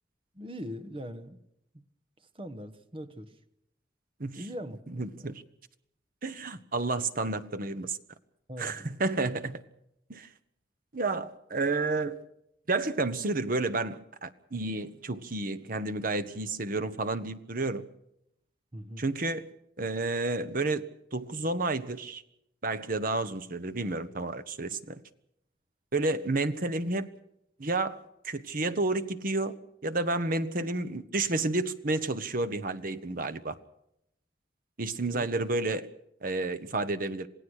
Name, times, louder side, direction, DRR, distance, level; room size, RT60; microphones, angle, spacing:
voice 1, 0.3-1.4 1.7-1.8 2.3-3.4 4.4-4.8 5.2-5.3 8.5-8.9 18.7-19.0 35.1-35.3, equal, 30° right, 1.3 m, -41 dB
voice 2, 4.9-5.4 6.2-8.0 8.6-9.6 10.1-10.3 10.9-12.2 12.7-17.8 19.0-19.4 19.8-20.8 21.1-22.2 22.6-25.0 25.9-27.1 27.6-29.6 29.8-33.5 34.8-35.9 36.2-37.3, right 2 dB, 55° right, 1.2 m, -31 dB
27.5 x 17.5 x 6.5 m
head